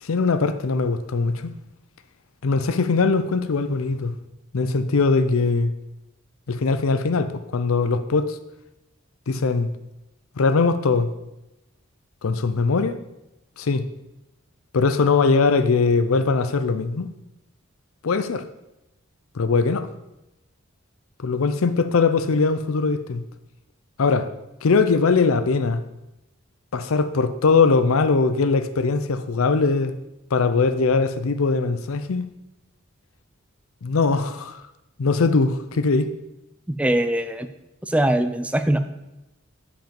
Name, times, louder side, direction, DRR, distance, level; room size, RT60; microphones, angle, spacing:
voice 1, 0.0-1.5 2.4-4.1 4.5-5.7 6.5-8.4 9.3-9.7 10.4-11.1 12.2-13.0 13.6-13.8 14.7-17.1 18.0-18.4 19.3-19.9 21.2-23.2 24.0-24.3 24.6-25.8 26.7-29.9 30.3-32.3 33.8-34.6 35.0-36.1, left 4 dB, 85° left, 0.6 m, -21 dB
voice 2, 36.7-37.5 37.9-38.8, right 1 dB, 5° right, 0.4 m, -21 dB
7.7 x 5.1 x 5.3 m
head